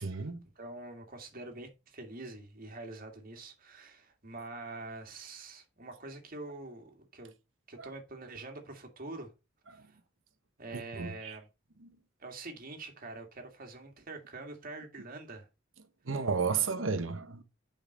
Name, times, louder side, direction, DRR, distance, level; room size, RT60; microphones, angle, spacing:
voice 1, 0.0-0.4 7.8-7.9 9.7-9.8 10.7-11.4 11.8-12.0 16.0-17.4, right 5 dB, 85° right, 1.1 m, -33 dB
voice 2, 0.6-7.3 7.7-9.3 9.7-10.0 10.6-11.5 12.2-15.5, right 2 dB, 45° right, 2.0 m, -45 dB
7.3 x 5.3 x 5.2 m
head